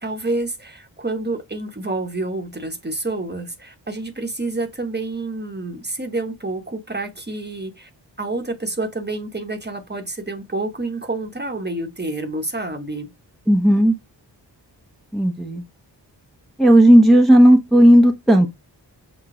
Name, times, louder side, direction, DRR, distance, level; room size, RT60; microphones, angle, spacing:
voice 1, 0.0-7.9 8.2-13.1, right 2 dB, 25° right, 1.0 m, -28 dB
voice 2, 13.5-13.9 15.1-15.6 16.6-18.5, equal, ahead, 0.8 m, -13 dB
5.9 x 2.2 x 3.7 m
cardioid pair, 45°, 44 cm